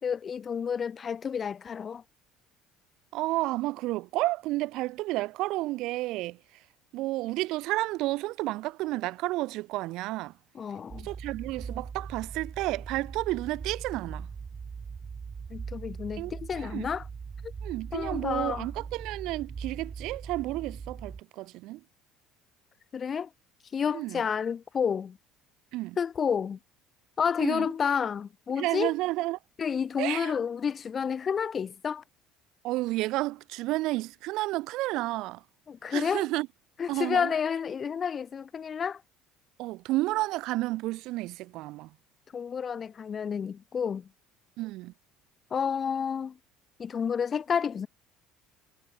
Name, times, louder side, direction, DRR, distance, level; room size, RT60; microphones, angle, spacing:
voice 1, 0.0-2.0 10.6-11.1 15.5-17.0 17.9-18.7 22.9-23.3 23.7-25.2 26.0-26.6 27.2-28.9 29.6-32.0 35.7-36.3 36.8-39.0 42.3-44.1 45.5-46.4 46.8-47.9, left 7 dB, 30° left, 3.6 m, -30 dB
voice 2, 3.1-6.4 6.9-10.3 11.0-14.3 16.2-16.9 17.6-21.8 23.9-24.2 25.7-26.0 27.4-27.7 28.6-29.4 30.0-30.3 32.6-35.4 35.9-36.5 36.9-37.3 39.6-41.9 44.6-44.9, right 19 dB, 70° right, 5.0 m, -31 dB
sound 1, 10.9-21.2, right 5 dB, 25° right, 5.3 m, -40 dB
cardioid pair, 125°, 0 cm